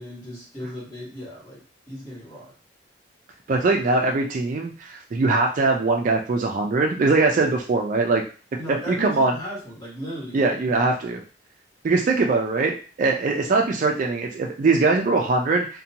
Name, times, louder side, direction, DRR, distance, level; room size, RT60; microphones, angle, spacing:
voice 1, 0.0-1.6 1.9-2.5 8.6-10.6, equal, 20° left, -7 dB, 1.4 m, -36 dB
voice 2, 3.5-8.2 8.7-9.3 10.3-11.2 11.8-15.8, right 3 dB, 40° right, 2 dB, 0.3 m, -21 dB
2.6 x 2.2 x 2.7 m, 0.37 s
head